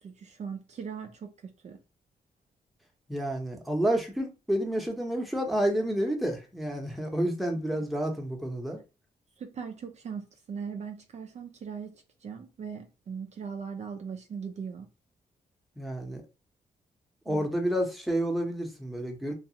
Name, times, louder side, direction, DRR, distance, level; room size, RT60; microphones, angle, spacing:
voice 1, 0.0-1.8 9.4-14.9 17.3-17.5, right 6 dB, 50° right, 0.4 m, -39 dB
voice 2, 3.1-8.8 15.8-16.2 17.3-19.3, right 1 dB, ahead, 0.8 m, -29 dB
2.4 x 2.3 x 2.8 m
cardioid pair, 90°, 15 cm